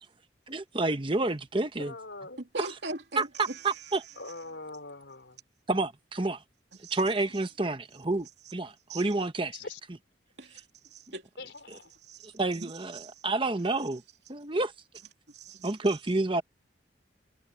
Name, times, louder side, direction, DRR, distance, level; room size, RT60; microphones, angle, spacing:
voice 1, 0.5-1.9 2.6-2.7 3.2-4.0 5.7-6.4 6.9-9.6 12.2-14.0 14.3-14.7 15.6-16.4, right 2 dB, 30° right, 1.0 m, -29 dB
voice 2, 1.8-2.4 4.2-5.4 9.5-9.8 11.4-11.9, left 3 dB, 80° left, 3.8 m, -42 dB
voice 3, 2.5-3.9 6.8-7.0 8.9-9.0 10.4-10.6 10.9-11.3 12.0-13.1 15.3-15.7, right 3 dB, 70° right, 2.7 m, -41 dB
head